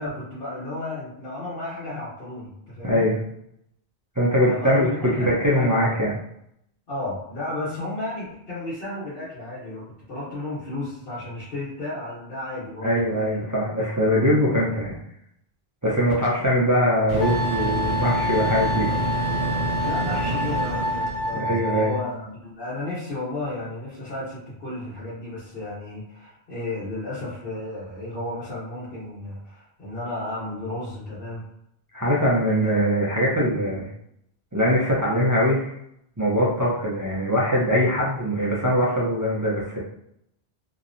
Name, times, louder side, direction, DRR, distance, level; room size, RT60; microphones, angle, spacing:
voice 1, 0.0-3.1 4.5-5.9 6.9-13.0 19.8-31.4 32.6-32.7, left 2 dB, 65° left, -10 dB, 1.2 m, -33 dB
voice 2, 2.8-3.2 4.2-4.9 5.2-6.1 12.8-15.0 15.8-18.9 21.3-21.9 31.9-33.9 34.5-35.7 36.2-39.8, equal, 25° right, -6 dB, 0.4 m, -22 dB
Microwave oven, 16.1-16.2 17.1-21.3, right 1 dB, 70° right, 1.0 m, -28 dB
Wind instrument woodwind instrument, 17.2-22.1, left 1 dB, 35° left, 0.7 m, -28 dB
2.8 x 2.1 x 2.5 m, 0.76 s
omnidirectional pair, 1.0 m